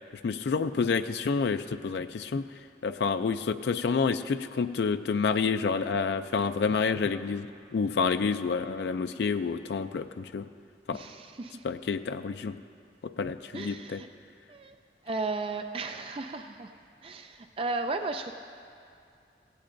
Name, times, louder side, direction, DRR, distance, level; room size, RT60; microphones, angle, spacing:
voice 1, 0.2-2.4 2.8-7.5 7.7-10.5 10.9-11.0 11.6-12.6 13.0-14.0, left 5 dB, 75° left, 10 dB, 0.4 m, -28 dB
voice 2, 10.9-11.6 13.5-14.1 14.5-14.7 15.0-16.7 17.0-18.3, right 3 dB, 30° right, 6 dB, 0.4 m, -35 dB
17.0 x 15.5 x 2.6 m, 2.4 s
head